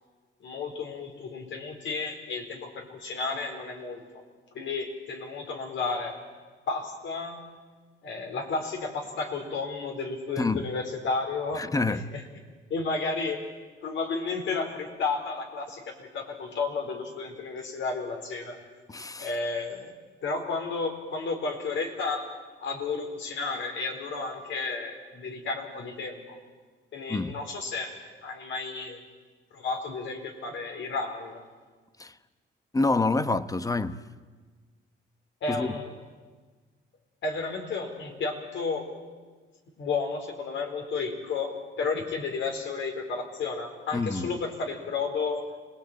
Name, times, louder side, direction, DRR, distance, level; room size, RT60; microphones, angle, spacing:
voice 1, 0.4-4.2 4.5-6.2 6.7-7.5 8.0-12.2 12.7-13.4 13.8-18.6 19.2-19.9 20.2-22.3 22.6-26.4 26.9-28.0 28.2-29.0 29.5-31.5 35.4-36.0 37.2-38.9 39.8-45.5, left 4 dB, 70° left, 4.5 m, -32 dB
voice 2, 11.6-12.0 18.9-19.3 27.1-27.4 32.0-32.1 32.7-34.0 35.5-35.7 43.9-44.3, left 3 dB, 15° left, 1.1 m, -27 dB
26.5 x 19.5 x 9.1 m
cardioid pair, 90°, 20 cm